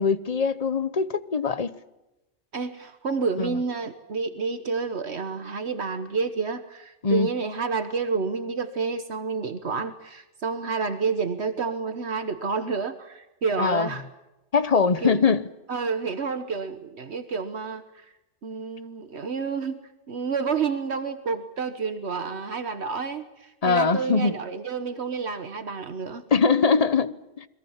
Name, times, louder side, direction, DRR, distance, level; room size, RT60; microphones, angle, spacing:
voice 1, 0.0-1.7 3.4-3.6 7.0-7.3 13.6-13.9 14.5-15.5 23.6-24.4 26.3-27.5, left 5 dB, 35° left, 1.0 m, -22 dB
voice 2, 2.5-14.0 15.0-15.2 15.7-18.0 18.4-19.8 20.1-26.2, right 5 dB, 70° right, 1.5 m, -29 dB
29.0 x 22.0 x 7.3 m
omnidirectional pair, 1.2 m